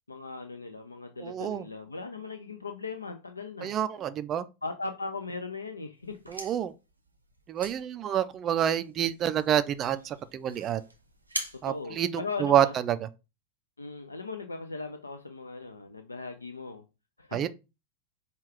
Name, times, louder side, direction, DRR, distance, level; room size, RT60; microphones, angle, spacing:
voice 1, 0.1-3.7 4.6-6.2 11.6-12.7 13.8-16.8 17.2-17.5, left 4 dB, 80° left, 0.4 m, -38 dB
voice 2, 1.2-1.6 3.6-4.4 6.3-6.7 7.5-10.8 11.6-13.0 17.3-17.5, right 10 dB, 30° right, 0.3 m, -28 dB
sound 1, 6.0-12.8, right 2 dB, 85° right, 0.7 m, -44 dB
5.2 x 2.3 x 3.4 m
figure-of-eight pair, 90°, 0 cm